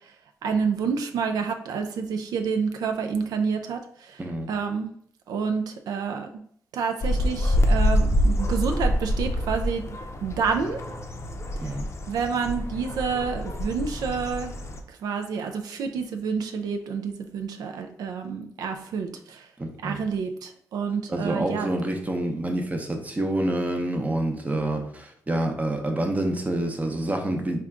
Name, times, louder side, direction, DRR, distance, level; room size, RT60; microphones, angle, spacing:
voice 1, 0.4-4.2 4.5-4.9 5.3-6.3 6.7-9.8 10.2-10.8 12.1-14.5 15.0-19.5 19.8-21.7, right 5 dB, 85° right, 6 dB, 0.3 m, -28 dB
voice 2, 4.2-4.5 11.6-11.9 19.6-20.0 21.1-27.6, right 1 dB, 25° right, 3 dB, 0.7 m, -27 dB
sound 1, 7.0-14.8, equal, 45° left, 0.5 m, -26 dB
3.6 x 2.2 x 3.6 m, 0.65 s
cardioid pair, 75°, 7 cm